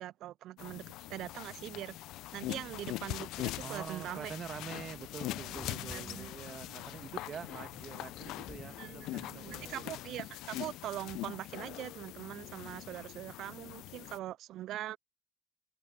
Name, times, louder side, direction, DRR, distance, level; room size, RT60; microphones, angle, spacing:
voice 1, 0.0-2.1 2.3-4.3 5.6-6.3 8.6-15.0, right 13 dB, 75° right, 0.4 m, -42 dB
sound 1, 0.6-14.2, left 17 dB, 75° left, 0.7 m, -42 dB
sound 2, 2.4-9.8, left 2 dB, 20° left, 5.5 m, -55 dB
voice 2, 3.6-9.9, right 7 dB, 55° right, 1.8 m, -46 dB
Bass guitar, 6.7-12.9, right 12 dB, 90° right, 1.6 m, -67 dB
hypercardioid pair, 45°, 0 cm